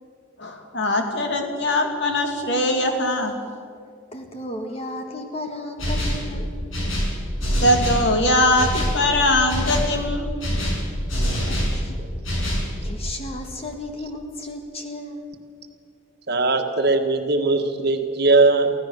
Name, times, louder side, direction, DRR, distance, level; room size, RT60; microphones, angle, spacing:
voice 1, 0.4-3.3 7.6-10.3 11.2-11.8, left 1 dB, 60° left, 3 dB, 2.7 m, -22 dB
voice 2, 4.1-6.5 11.2-11.9 12.5-15.2, left 1 dB, 30° left, 4 dB, 1.6 m, -34 dB
sound 1, 5.8-6.3 6.7-8.1 8.6-9.0 9.5-9.9 10.4-11.8 12.2-12.7, equal, 75° left, 6.6 m, -24 dB
voice 3, 16.3-18.7, right 3 dB, 50° right, 5 dB, 1.7 m, -19 dB
24.5 x 16.0 x 6.7 m, 2.3 s
head